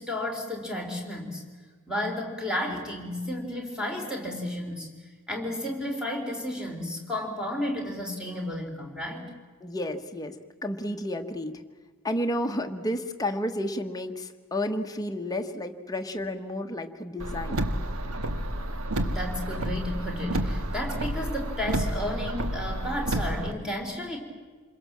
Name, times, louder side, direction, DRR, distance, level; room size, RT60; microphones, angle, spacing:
voice 1, 0.0-1.4 1.9-4.9 5.3-9.3 19.0-24.2, left 1 dB, 5° right, 1 dB, 3.8 m, -32 dB
voice 2, 9.6-10.4 10.6-11.6 12.0-17.7, left 1 dB, 15° left, 5 dB, 1.3 m, -31 dB
Car, 17.2-23.5, right 1 dB, 75° right, 1.6 m, -30 dB
27.5 x 22.0 x 7.5 m, 1.4 s
head